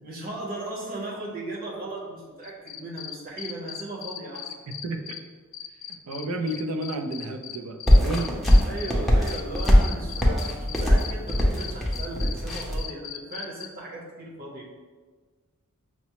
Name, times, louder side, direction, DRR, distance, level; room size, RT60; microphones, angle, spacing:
voice 1, 0.0-4.5 8.6-14.7, right 2 dB, 40° right, -3 dB, 0.9 m, -37 dB
sound 1, 2.4-5.2 5.5-8.9 9.3-13.7, left 10 dB, 65° left, 0.3 m, -37 dB
voice 2, 6.1-8.3, right 2 dB, 75° right, 5 dB, 0.4 m, -31 dB
sound 2, 7.9-12.8, equal, ahead, 0.5 m, -20 dB
5.8 x 2.0 x 2.9 m, 1.4 s
head